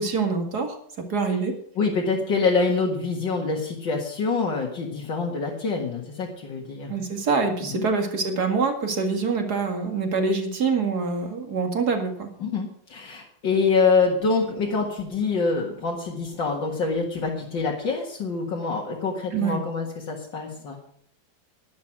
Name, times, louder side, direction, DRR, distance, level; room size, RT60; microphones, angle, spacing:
voice 1, 0.0-1.5 6.9-12.3 19.3-19.6, right 4 dB, 55° right, 4 dB, 2.6 m, -25 dB
voice 2, 1.8-7.0 7.6-7.8 12.4-20.8, left 4 dB, 75° left, -1 dB, 2.5 m, -25 dB
12.0 x 10.5 x 6.1 m, 0.65 s
omnidirectional pair, 2.0 m